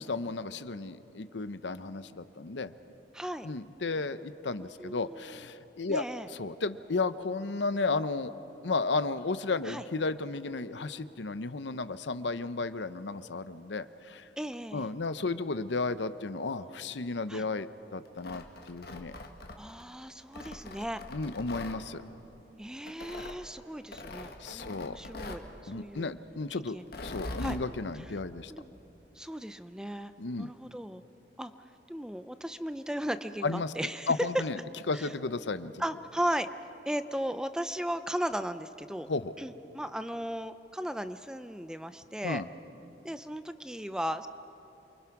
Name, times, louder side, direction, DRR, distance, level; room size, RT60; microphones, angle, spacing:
voice 1, 0.0-2.7 3.4-6.0 6.4-8.3 8.6-14.3 14.7-19.1 21.1-22.0 24.4-25.0 25.7-26.8 27.0-28.5 30.2-30.5 33.4-33.7 34.1-34.6 34.9-35.7 39.1-39.3 42.2-42.5, left 3 dB, 80° left, 13 dB, 0.8 m, -33 dB
voice 2, 3.1-3.5 4.6-5.4 5.9-6.3 9.6-9.8 14.4-14.9 17.3-17.5 19.6-21.0 22.6-26.1 26.7-26.8 27.4-27.6 28.5-28.7 29.2-30.1 30.4-31.0 31.4-31.5 31.9-34.1 34.9-35.1 35.8-36.5 36.9-39.1 39.4-42.4 43.0-44.3, equal, 5° right, 11 dB, 0.5 m, -36 dB
Tearing, 18.1-19.8 20.3-21.8 22.9-23.4 23.9-25.5 26.8-27.6, left 2 dB, 55° left, 1.7 m, -42 dB
28.5 x 23.5 x 6.0 m, 2.9 s
head